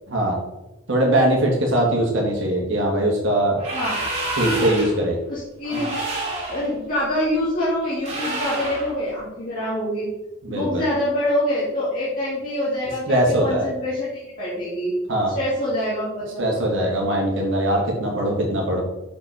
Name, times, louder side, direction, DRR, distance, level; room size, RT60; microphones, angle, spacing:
voice 1, 0.1-0.4 0.9-3.6 4.4-5.2 5.7-5.8 10.4-10.8 13.1-13.7 15.1-15.4 16.4-18.8, right 1 dB, 60° right, -1 dB, 1.6 m, -21 dB
sound 1, 3.6-5.0 5.6-6.7 8.0-8.9, right 2 dB, 30° right, 2.3 m, -28 dB
voice 2, 3.7-4.0 5.3-6.0 6.5-10.1 10.5-14.9 15.3-16.6, left 1 dB, 40° left, -10 dB, 2.1 m, -25 dB
6.4 x 5.0 x 4.8 m, 0.99 s
head